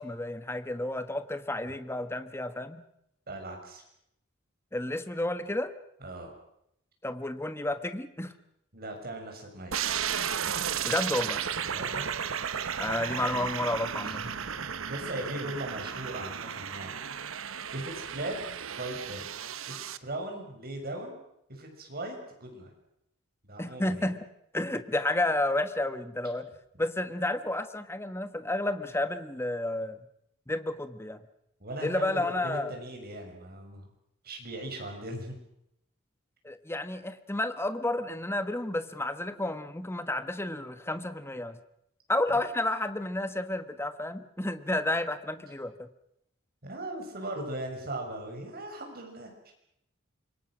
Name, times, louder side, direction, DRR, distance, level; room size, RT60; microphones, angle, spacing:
voice 1, 0.0-2.8 4.7-5.7 7.0-8.3 10.8-11.4 12.8-14.2 23.6-24.2 24.5-26.5 26.8-30.0 30.5-31.2 31.8-32.7 36.4-41.6 42.1-45.9, left 1 dB, 10° left, 11 dB, 1.3 m, -31 dB
voice 2, 3.3-3.8 6.0-6.3 8.7-9.7 11.7-12.1 14.0-16.9 17.7-19.3 19.7-21.2 21.5-22.7 23.5-24.1 31.6-33.9 34.2-35.3 42.3-42.4 46.6-49.5, right 1 dB, 50° right, 3 dB, 6.6 m, -39 dB
sound 1, 9.7-20.0, right 8 dB, 75° right, 1.0 m, -34 dB
26.5 x 23.5 x 6.3 m, 0.78 s
head